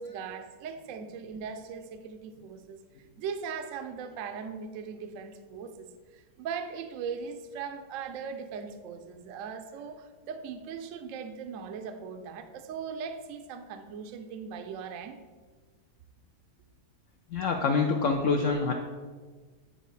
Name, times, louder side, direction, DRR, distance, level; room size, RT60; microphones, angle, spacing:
voice 1, 0.0-2.8 3.2-15.2, right 6 dB, 70° right, 8 dB, 0.8 m, -39 dB
voice 2, 17.3-18.7, left 4 dB, 75° left, 3 dB, 0.7 m, -26 dB
9.1 x 4.1 x 4.1 m, 1.4 s
omnidirectional pair, 1.8 m